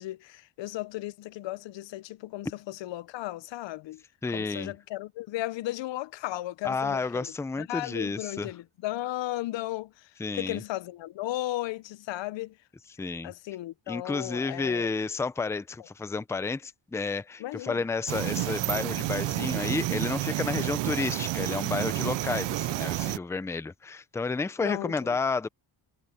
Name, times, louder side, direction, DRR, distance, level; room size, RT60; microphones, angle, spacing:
voice 1, 0.0-4.0 4.3-7.3 7.6-10.1 10.3-12.5 13.2-14.9 17.4-17.8 24.6-25.2, left 16 dB, 85° left, 0.7 m, -35 dB
voice 2, 4.2-4.7 6.6-8.5 10.2-10.6 13.0-13.3 13.9-25.5, left 4 dB, 5° left, 0.4 m, -31 dB
sound 1, 18.1-23.2, right 17 dB, 80° right, 0.5 m, -30 dB
wide cardioid pair, 165°, 43 cm